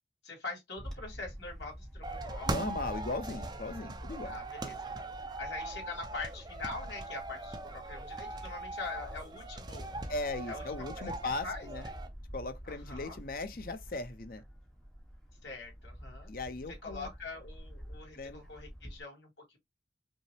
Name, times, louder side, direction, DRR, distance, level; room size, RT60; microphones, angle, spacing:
voice 1, 0.2-2.7 4.2-5.1 5.4-9.9 10.5-10.6 11.4-11.7 12.7-13.2 15.4-16.3 16.8-19.6, left 3 dB, 80° left, 2.1 m, -43 dB
Bird / Wind, 0.8-19.0, equal, 5° left, 0.9 m, -47 dB
sound 1, 2.0-12.1, right 2 dB, 25° right, 0.5 m, -41 dB
voice 2, 2.5-4.4 10.1-11.8 12.3-14.4 16.3-17.1 18.1-18.5, left 2 dB, 50° left, 0.6 m, -38 dB
5.3 x 2.0 x 3.3 m
head